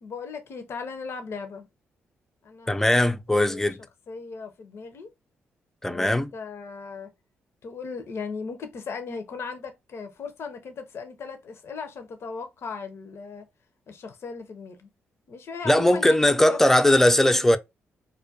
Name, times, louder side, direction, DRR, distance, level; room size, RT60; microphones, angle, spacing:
voice 1, 0.0-1.7 2.4-3.0 3.3-3.7 4.1-5.1 5.9-7.1 7.6-13.4 13.9-14.9 15.3-16.2 16.5-16.6, left 5 dB, 60° left, 0.5 m, -37 dB
voice 2, 2.7-3.8 5.8-6.3 15.6-17.6, left 1 dB, 5° left, 0.3 m, -19 dB
2.2 x 2.1 x 2.6 m
cardioid pair, 65°, 5 cm